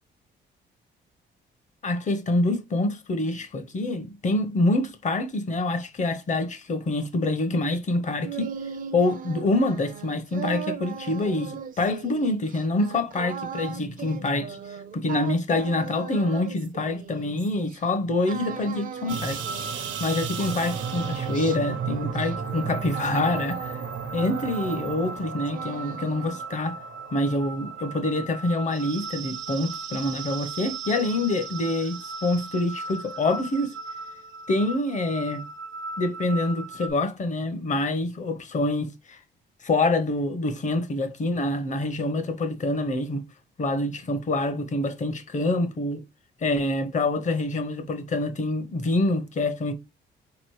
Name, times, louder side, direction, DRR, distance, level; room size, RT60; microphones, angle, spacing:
voice 1, 1.8-8.5 8.9-19.4 20.0-23.8 24.1-26.8 27.1-33.7 34.5-35.4 36.0-39.2 39.6-43.2 43.6-46.0 46.4-49.7, left 2 dB, 40° left, 0.8 m, -26 dB
sound 1, 7.9-17.8 18.3-20.1 20.4-23.9 24.1-25.2 25.5-26.4, right 7 dB, 45° right, 0.5 m, -38 dB
sound 2, 19.1-36.9, right 5 dB, 75° right, 0.8 m, -35 dB
4.0 x 3.0 x 3.1 m
cardioid pair, 90°, 20 cm